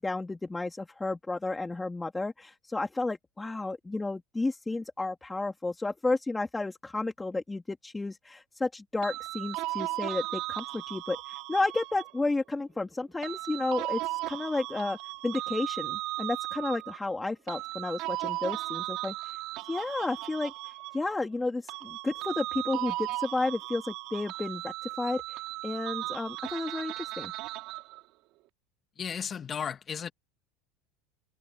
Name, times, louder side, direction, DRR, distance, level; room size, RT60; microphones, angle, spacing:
voice 1, 0.0-14.0 14.3-15.0 15.2-27.3, left 2 dB, 10° left, 3.5 m, -32 dB
sound 1, 9.0-12.4 13.2-17.0 17.5-21.4 21.7-28.0, right 19 dB, 60° right, 6.5 m, -36 dB
voice 2, 29.0-30.1, left 7 dB, 30° left, 2.1 m, -34 dB
hypercardioid pair, 100°, 0 cm